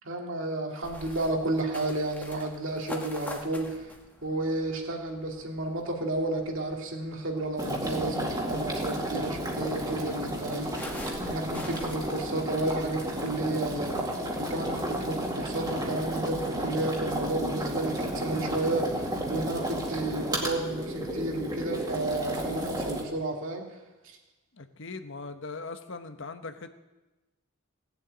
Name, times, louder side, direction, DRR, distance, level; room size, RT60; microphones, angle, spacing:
voice 1, 0.0-3.9 4.2-14.0 14.4-23.7, right 2 dB, 60° right, 1 dB, 2.5 m, -32 dB
sound 1, 0.8-12.0, left 1 dB, 10° left, 1.8 m, -46 dB
sound 2, 7.6-23.0, right 1 dB, 20° right, 2.2 m, -32 dB
voice 2, 24.6-26.7, left 3 dB, 60° left, 8 dB, 1.0 m, -40 dB
18.0 x 7.8 x 8.8 m, 1.1 s
head